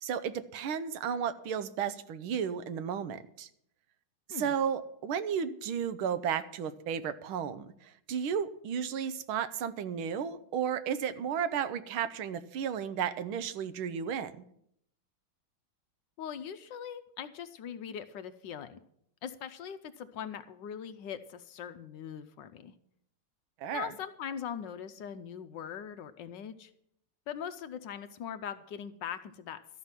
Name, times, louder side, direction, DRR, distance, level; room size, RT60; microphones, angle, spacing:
voice 1, 0.0-3.5 4.3-14.3 23.6-23.9, right 8 dB, 85° right, 13 dB, 1.6 m, -33 dB
voice 2, 16.2-18.8 19.2-22.7 23.7-26.7 27.3-29.6, left 8 dB, 70° left, 10 dB, 1.2 m, -41 dB
13.0 x 5.9 x 9.6 m, 0.71 s
omnidirectional pair, 2.3 m